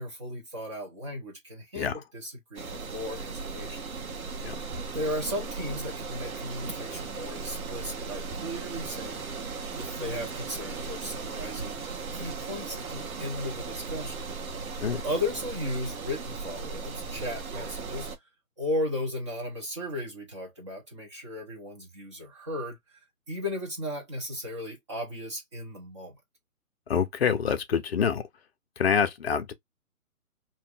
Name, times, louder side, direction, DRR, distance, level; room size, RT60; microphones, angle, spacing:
voice 1, 0.0-3.8 4.9-11.8 12.1-14.2 15.0-18.1 18.6-23.0 23.3-26.1, left 1 dB, 20° right, 0.8 m, -35 dB
sound 1, 2.6-18.2, right 4 dB, 70° right, 1.1 m, -37 dB
voice 2, 26.9-28.2 28.8-29.5, left 7 dB, 45° left, 0.6 m, -26 dB
2.6 x 2.5 x 3.4 m
hypercardioid pair, 160°, 44 cm